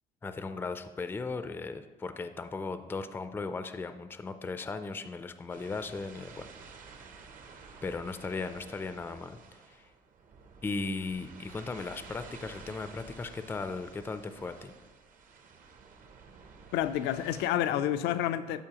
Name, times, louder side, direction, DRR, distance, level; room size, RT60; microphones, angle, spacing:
voice 1, 0.2-6.5 7.8-9.4 9.7-9.8 10.6-14.7, left 4 dB, 15° left, 0.3 m, -37 dB
sea loop, 5.5-17.5, right 5 dB, 50° right, 0.8 m, -52 dB
voice 2, 16.7-18.6, left 11 dB, 85° left, 0.4 m, -29 dB
12.0 x 4.6 x 2.9 m
cardioid pair, 110°, 17 cm